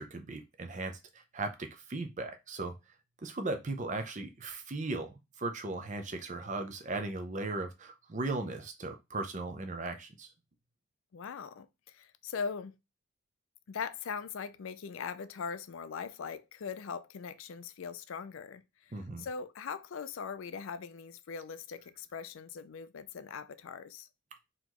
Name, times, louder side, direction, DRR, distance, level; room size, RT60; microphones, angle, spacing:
voice 1, 0.0-2.8 3.2-10.3 18.9-19.2, right 2 dB, 35° right, 0.6 m, -37 dB
voice 2, 11.1-12.7 13.7-24.1, left 6 dB, 75° left, 0.4 m, -41 dB
3.9 x 3.0 x 3.0 m
head